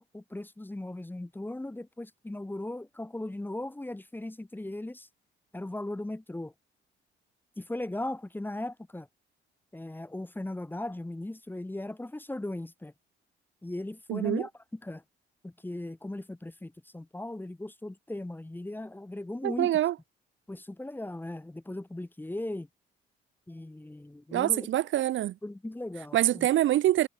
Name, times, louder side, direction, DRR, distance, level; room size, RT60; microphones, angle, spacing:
voice 1, 0.0-5.1 5.5-6.5 7.6-9.1 9.7-12.9 13.6-15.0 15.4-19.7 20.5-22.7 23.5-24.7 25.4-26.5, left 1 dB, 10° left, 1.4 m, -38 dB
voice 2, 14.1-14.4 19.4-19.9 24.3-25.3 26.1-27.1, right 13 dB, 75° right, 1.2 m, -25 dB
cardioid pair, 90°, 20 cm